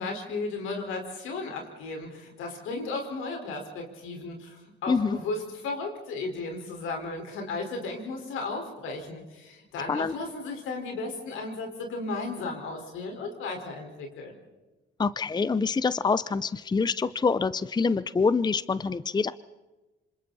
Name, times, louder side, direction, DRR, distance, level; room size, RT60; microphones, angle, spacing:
voice 1, 0.0-14.3, left 3 dB, 85° left, 2 dB, 4.9 m, -35 dB
voice 2, 4.9-5.2 9.9-10.1 15.0-19.3, left 4 dB, 20° left, 16 dB, 0.6 m, -26 dB
27.5 x 26.0 x 4.2 m, 1.1 s
cardioid pair, 90°, 20 cm